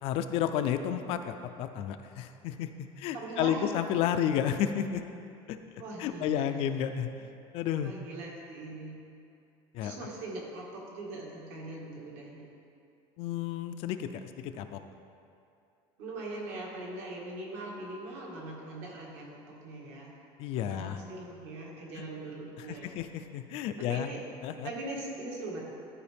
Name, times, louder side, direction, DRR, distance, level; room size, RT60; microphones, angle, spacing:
voice 1, 0.0-5.1 5.5-5.6 6.0-7.9 9.7-10.0 13.2-14.8 20.4-21.0 22.0-22.1 22.6-24.1 24.4-24.7, left 10 dB, 50° left, 9 dB, 0.4 m, -32 dB
voice 2, 3.1-3.7 5.8-6.5 6.7-6.9 7.8-9.0 9.8-12.5 16.0-20.1 20.7-23.0 23.9-24.2 24.6-25.6, right 2 dB, 70° right, -3 dB, 1.8 m, -41 dB
12.5 x 4.7 x 3.4 m, 2.6 s
cardioid pair, 170°, 12 cm